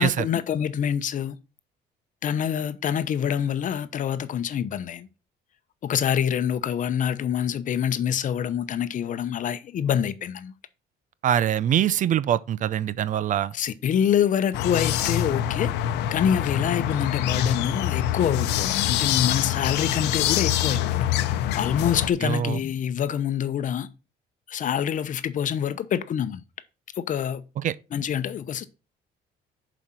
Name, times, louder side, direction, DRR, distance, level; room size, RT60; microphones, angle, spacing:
voice 1, 0.0-1.4 2.2-5.1 5.8-10.5 13.5-15.7 16.1-21.1 21.5-23.9 24.5-26.4 27.0-27.4 27.9-28.6, left 9 dB, 50° left, 0.8 m, -26 dB
voice 2, 11.2-13.5 22.2-22.6 27.6-27.7, right 10 dB, 50° right, 0.5 m, -23 dB
sound 1, 14.5-22.1, left 11 dB, 90° left, 0.8 m, -25 dB
7.2 x 5.1 x 5.8 m
cardioid pair, 110°, 17 cm